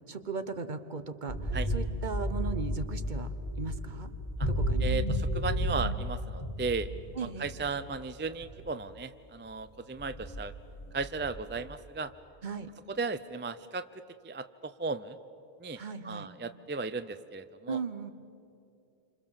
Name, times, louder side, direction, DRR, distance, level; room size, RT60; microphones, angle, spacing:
voice 1, 0.1-3.3 3.6-4.1 4.5-4.9 7.1-7.5 12.4-12.7 15.8-16.3 17.7-18.1, right 5 dB, 45° right, 10 dB, 1.1 m, -37 dB
sound 1, 1.3-8.9 9.6-9.7 10.0-11.7, equal, 30° left, 1.4 m, -33 dB
voice 2, 4.8-6.9 7.2-10.5 10.9-12.1 12.9-13.8 14.2-15.2 15.6-17.8, right 4 dB, 15° right, 12 dB, 0.4 m, -36 dB
28.0 x 26.5 x 7.2 m, 2.7 s
omnidirectional pair, 1.1 m